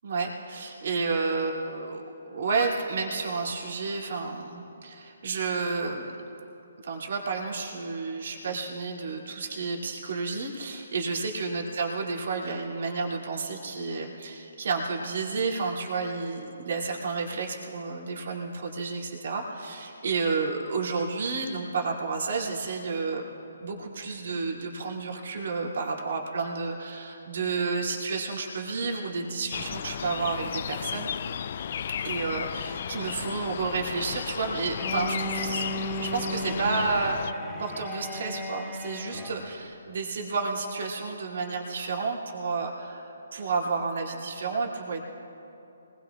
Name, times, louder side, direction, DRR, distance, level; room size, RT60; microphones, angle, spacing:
voice 1, 0.0-6.1 6.8-23.3 23.6-31.1 32.0-37.3 37.6-45.0, right 4 dB, 60° right, -1 dB, 2.6 m, -31 dB
sound 1, 29.5-37.3, left 8 dB, 50° left, 0.3 m, -34 dB
Bowed string instrument, 34.8-39.6, equal, 5° left, 2.0 m, -35 dB
25.0 x 20.5 x 2.4 m, 2.9 s
figure-of-eight pair, 140°, 0 cm